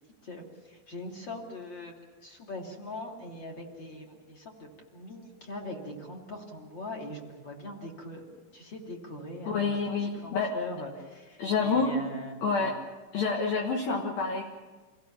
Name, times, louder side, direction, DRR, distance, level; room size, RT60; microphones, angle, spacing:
voice 1, 0.2-1.9 2.2-8.2 8.5-9.7 10.0-12.7, left 1 dB, 30° left, 0 dB, 2.6 m, -41 dB
voice 2, 9.5-10.5 11.4-11.9 12.4-12.8 13.1-14.4, left 4 dB, 60° left, 0 dB, 2.8 m, -28 dB
27.0 x 17.5 x 7.3 m, 1.3 s
omnidirectional pair, 5.7 m